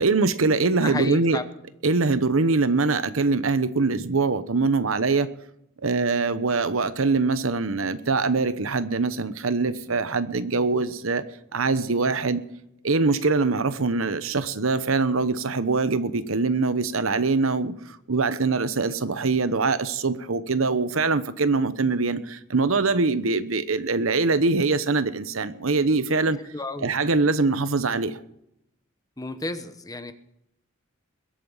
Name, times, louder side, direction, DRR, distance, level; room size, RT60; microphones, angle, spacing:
voice 1, 0.0-1.4 1.8-5.3 5.8-11.2 11.5-12.4 12.8-26.4 26.8-28.2, right 3 dB, 85° right, 1.0 m, -23 dB
voice 2, 0.8-1.5 26.5-26.9 29.2-30.1, left 2 dB, 20° left, 1.0 m, -32 dB
21.5 x 8.6 x 5.6 m
head